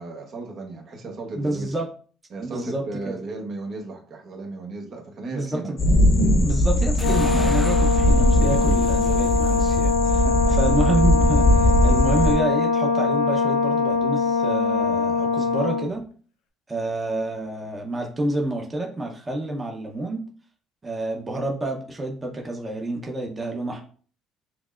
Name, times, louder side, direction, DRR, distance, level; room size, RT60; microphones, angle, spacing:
voice 1, 0.0-1.7 2.3-5.7 6.3-6.5 10.2-10.6, right 3 dB, 55° right, 1 dB, 0.9 m, -35 dB
voice 2, 1.3-1.9 2.4-3.1 5.3-5.8 6.0-6.1 6.4-16.0 16.7-20.2 20.8-23.8, right 2 dB, 25° right, 1 dB, 0.8 m, -28 dB
sound 1, 5.8-12.3, equal, 50° left, 0.9 m, -20 dB
Brass instrument, 7.0-15.9, left 5 dB, 90° left, 0.6 m, -22 dB
sound 2, 7.0-12.3, left 1 dB, 20° left, 0.6 m, -34 dB
5.8 x 2.0 x 2.4 m, 0.42 s
supercardioid pair, 80°, 0 cm